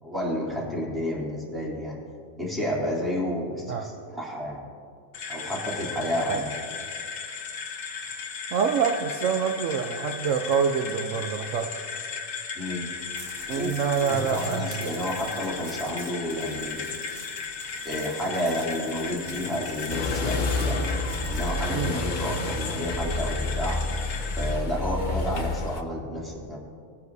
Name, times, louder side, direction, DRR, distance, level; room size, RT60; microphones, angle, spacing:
voice 1, 0.0-2.0 2.4-4.6 5.3-6.5 12.6-12.9 13.5-13.7 14.1-16.9 17.8-20.8 21.3-23.8 24.4-26.6, equal, ahead, -6 dB, 2.8 m, -30 dB
sound 1, 5.1-24.5, left 5 dB, 75° left, 1.2 m, -36 dB
voice 2, 8.5-11.7 13.5-14.9 21.7-21.9, right 6 dB, 70° right, 4 dB, 1.0 m, -26 dB
sound 2, 13.0-22.5, right 2 dB, 40° right, 1.4 m, -46 dB
sound 3, 19.9-25.8, left 2 dB, 45° left, 0.7 m, -29 dB
21.5 x 9.6 x 2.7 m, 2.2 s
omnidirectional pair, 1.4 m